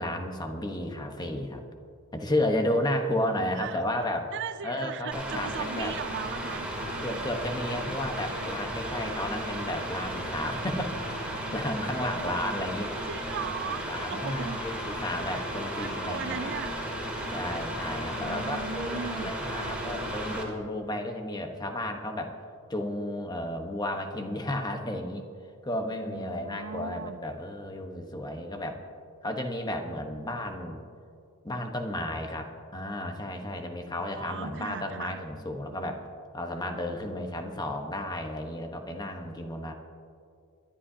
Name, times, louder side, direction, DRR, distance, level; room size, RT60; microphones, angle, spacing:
voice 1, 0.0-1.7 2.1-4.3 4.6-6.0 7.0-11.0 11.3-12.9 13.7-16.5 17.3-22.3 22.7-25.2 25.6-28.8 29.2-30.8 31.4-36.0 36.3-39.7, left 1 dB, 20° left, 4 dB, 1.1 m, -33 dB
voice 2, 4.3-7.1 7.7-8.0 12.1-12.4 13.1-14.6 15.3-16.8 18.2-19.3 26.0-27.2 34.2-35.2, right 7 dB, 55° right, 13 dB, 0.4 m, -38 dB
Mechanical fan, 5.1-20.4, right 1 dB, 5° right, 2.6 m, -34 dB
24.0 x 11.5 x 2.8 m, 2.4 s
head